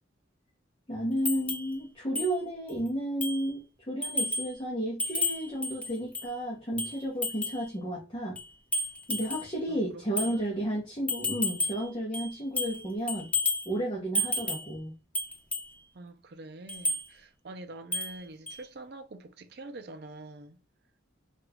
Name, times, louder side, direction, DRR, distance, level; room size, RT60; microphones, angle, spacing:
voice 1, 0.9-3.6 3.9-8.4 9.1-13.3 13.6-14.9, right 1 dB, 25° left, 0.8 m, -32 dB
sound 1, 1.3-1.7 2.2-2.3 2.7-2.8 3.2-3.5 4.0-4.5 5.0-6.3 6.8-7.6 8.4-9.5 10.2-10.3 11.1-11.9 12.1-12.8 13.1-13.7 14.1-14.7 15.1-15.7 16.7-17.0 17.9-18.2 18.5-18.6, left 2 dB, 5° left, 0.3 m, -31 dB
voice 2, 9.7-10.7 15.9-20.6, right 2 dB, 55° right, 0.5 m, -46 dB
3.0 x 2.4 x 3.4 m
head